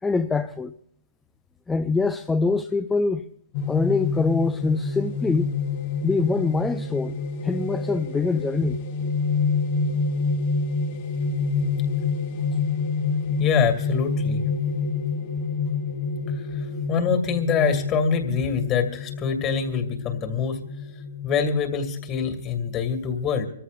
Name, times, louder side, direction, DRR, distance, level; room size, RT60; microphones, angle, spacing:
voice 1, 0.0-0.8 1.7-3.3 3.7-5.6 6.0-8.8, left 3 dB, 10° left, 0.5 m, -24 dB
sound 1, 3.5-22.7, left 4 dB, 45° left, 1.4 m, -28 dB
voice 2, 13.4-14.4 16.3-20.7 21.2-23.5, left 6 dB, 30° left, 2.3 m, -25 dB
26.5 x 14.5 x 2.5 m
hypercardioid pair, 130°, 0 cm